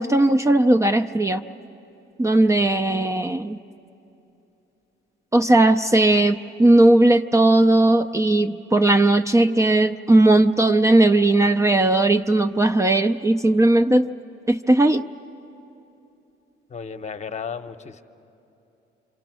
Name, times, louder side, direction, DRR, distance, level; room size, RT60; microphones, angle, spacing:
voice 1, 0.0-1.4 2.2-3.6 5.3-14.1 14.5-15.0, right 2 dB, 15° right, 7 dB, 0.4 m, -17 dB
voice 2, 16.7-18.0, left 6 dB, 35° left, 8 dB, 0.9 m, -34 dB
27.5 x 25.0 x 6.2 m, 2.9 s
cardioid pair, 90°, 20 cm